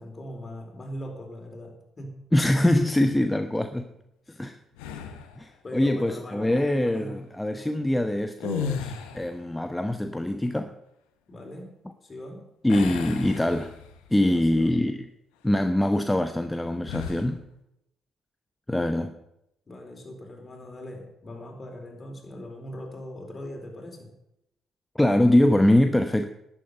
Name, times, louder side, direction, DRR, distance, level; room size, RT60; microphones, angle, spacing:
voice 1, 0.0-2.1 4.3-4.4 5.6-6.5 6.9-7.2 11.3-11.7 12.0-12.5 14.2-14.7 19.7-24.1, left 1 dB, 35° left, 2 dB, 4.4 m, -40 dB
voice 2, 2.3-3.9 4.4-4.6 5.4-10.7 12.6-13.7 14.1-15.1 15.4-17.4 18.7-19.2 24.9-26.3, left 1 dB, 10° left, 8 dB, 1.0 m, -23 dB
sound 1, 4.8-5.4 8.3-9.4 12.7-14.1 14.6-14.8 16.8-17.3, left 7 dB, 85° left, 1.3 m, -34 dB
11.5 x 9.0 x 8.1 m, 0.83 s
hypercardioid pair, 50°, 0 cm